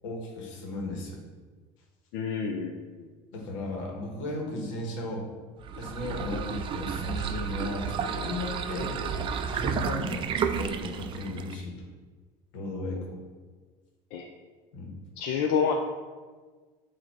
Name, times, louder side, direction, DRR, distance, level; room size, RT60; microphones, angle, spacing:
voice 1, 0.0-1.2 3.3-5.3 5.8-9.0 9.5-11.8 12.5-13.2 14.7-15.0, left 2 dB, 90° left, 0 dB, 1.5 m, -36 dB
voice 2, 2.1-3.1 14.1-14.3 15.2-15.7, left 6 dB, 70° left, 2 dB, 0.5 m, -28 dB
sound 1, 5.6-11.6, right 6 dB, 35° right, 0.4 m, -32 dB
7.3 x 2.9 x 4.5 m, 1.4 s
supercardioid pair, 125°, 16 cm